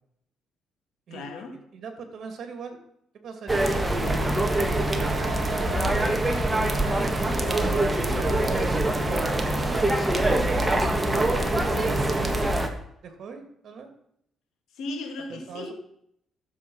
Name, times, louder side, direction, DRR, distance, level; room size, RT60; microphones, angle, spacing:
voice 1, 1.1-1.6 14.7-15.7, left 2 dB, 80° left, 2.2 m, -36 dB
voice 2, 1.7-2.8 3.2-4.2 4.6-12.5 13.0-13.9 15.3-15.7, right 5 dB, 60° right, 2.4 m, -38 dB
sound 1, 3.5-12.7, right 1 dB, 15° right, 1.6 m, -24 dB
13.0 x 7.3 x 5.5 m
cardioid pair, 90°, 0 cm